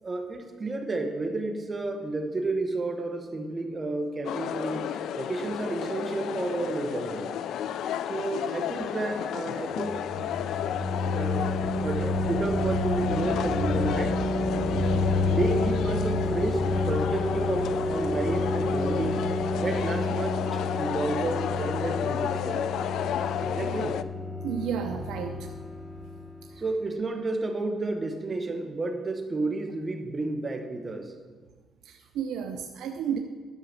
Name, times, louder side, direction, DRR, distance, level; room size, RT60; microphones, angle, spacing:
voice 1, 0.0-7.3 8.1-10.1 11.0-11.4 11.8-14.2 14.6-14.9 15.3-19.3 19.6-22.7 23.4-24.0 26.6-31.1, right 2 dB, 25° right, 4 dB, 1.1 m, -31 dB
sound 1, 4.2-24.0, left 10 dB, 75° left, 0.3 m, -32 dB
sound 2, 9.7-26.4, left 2 dB, 25° left, 1.3 m, -29 dB
voice 2, 24.4-25.5 26.5-26.6 31.8-33.2, right 8 dB, 90° right, 4 dB, 0.6 m, -32 dB
11.0 x 5.8 x 6.6 m, 1.5 s
cardioid pair, 145°, 0 cm